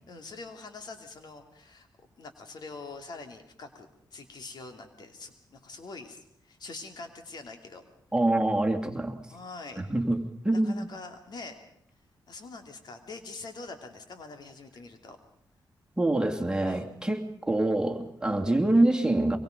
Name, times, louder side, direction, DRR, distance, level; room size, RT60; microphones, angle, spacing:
voice 1, 0.1-1.9 2.2-7.8 9.3-9.8 10.5-11.6 12.3-15.2 16.6-16.9, left 3 dB, 65° left, 6 dB, 2.9 m, -44 dB
voice 2, 8.1-9.2 9.8-10.9 16.0-19.4, right 1 dB, 10° right, 2 dB, 2.8 m, -25 dB
23.5 x 23.0 x 5.3 m, 0.68 s
cardioid pair, 75°, 8 cm